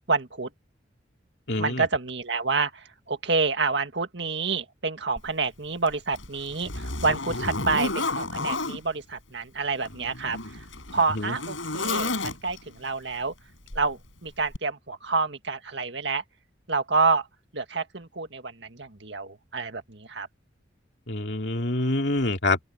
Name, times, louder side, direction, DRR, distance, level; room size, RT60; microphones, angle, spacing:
voice 1, 0.1-0.5 1.6-10.4 10.9-13.3 13.8-16.2 16.7-17.3 17.5-20.3, right 4 dB, 65° right, 1.9 m, -28 dB
voice 2, 1.5-1.9 11.1-11.3 21.1-22.6, left 2 dB, 60° left, 2.4 m, -26 dB
Zipper (clothing), 5.2-5.3 5.9-8.8 9.8-12.7 13.7-13.9 14.5-14.6, left 3 dB, 80° left, 5.7 m, -31 dB
open air
head